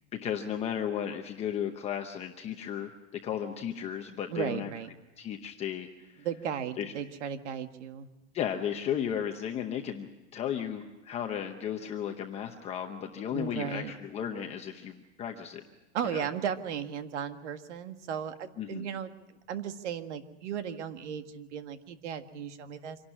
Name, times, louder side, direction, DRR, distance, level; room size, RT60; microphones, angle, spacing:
voice 1, 0.1-2.9 3.2-4.7 5.2-6.3 6.8-6.9 8.3-15.6 16.0-16.3 18.6-18.9, left 9 dB, 20° left, 4 dB, 0.8 m, -34 dB
voice 2, 4.3-4.9 6.2-8.1 13.3-13.9 15.9-19.1 19.5-23.0, right 8 dB, 75° right, 8 dB, 1.8 m, -35 dB
26.0 x 12.0 x 9.9 m, 1.0 s
supercardioid pair, 165°, 35 cm